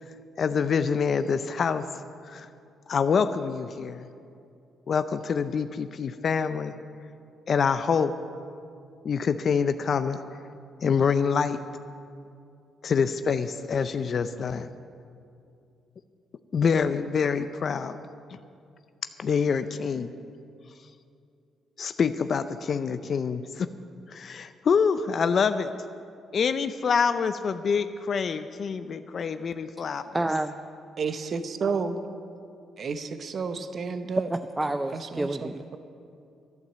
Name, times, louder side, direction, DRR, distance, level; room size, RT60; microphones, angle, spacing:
voice 1, 0.4-1.8 2.3-2.5 2.9-4.0 4.9-6.7 7.5-8.1 9.0-10.2 10.8-11.6 12.8-14.7 16.5-18.0 19.2-20.1 21.8-23.7 24.1-25.7 26.3-30.2, left 6 dB, 50° left, 10 dB, 0.5 m, -26 dB
voice 2, 30.1-30.6 34.3-35.8, right 2 dB, 15° right, 9 dB, 0.5 m, -29 dB
voice 3, 31.0-32.0 32.8-34.3 34.9-35.8, right 5 dB, 50° right, 10 dB, 0.8 m, -31 dB
12.0 x 11.0 x 7.4 m, 2.5 s
cardioid pair, 90°, 0 cm